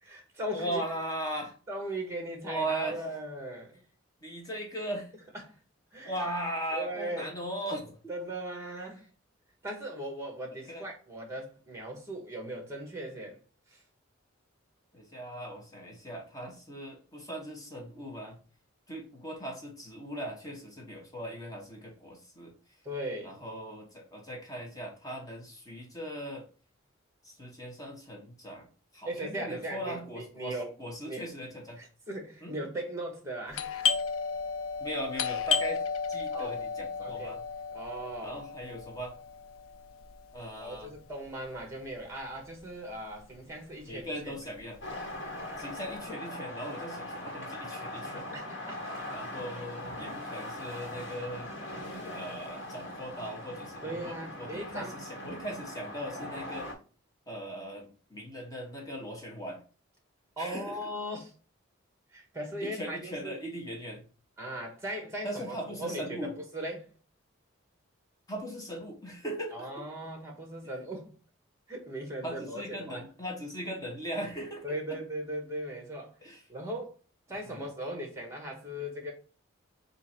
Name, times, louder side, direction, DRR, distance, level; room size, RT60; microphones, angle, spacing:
voice 1, 0.0-0.8 1.7-3.7 5.3-5.5 5.9-6.1 6.7-7.3 8.1-9.0 9.6-13.4 13.7-13.8 22.8-23.4 29.0-30.7 31.1-31.2 31.8-33.7 36.3-36.6 37.0-37.3 37.7-38.4 40.6-44.4 48.3-48.8 50.0-50.2 53.8-54.9 60.4-61.3 62.1-63.4 64.4-66.9 69.5-71.1 71.7-73.0 74.6-76.1 76.5-76.9 77.3-79.1, right 1 dB, 15° right, 1.2 m, -38 dB
voice 2, 0.5-1.6 2.4-3.0 4.2-5.1 6.0-8.0 10.6-10.9 14.9-18.4 18.9-22.5 23.2-26.5 27.3-28.7 28.9-31.9 32.4-32.5 34.8-35.8 36.1-37.4 38.2-39.1 40.3-40.9 43.8-44.8 45.6-48.3 49.1-51.5 52.1-56.7 57.3-59.6 60.4-60.8 62.6-64.0 65.2-66.3 68.3-69.8 72.2-75.0 76.2-76.4 77.5-77.6, right 1 dB, 15° left, 1.0 m, -39 dB
Doorbell, 33.5-42.9 43.2-43.3 43.9-44.2 44.6-45.9, left 6 dB, 80° left, 0.4 m, -34 dB
sound 1, 44.8-56.7, left 1 dB, 65° left, 1.5 m, -40 dB
3.7 x 2.6 x 4.2 m
head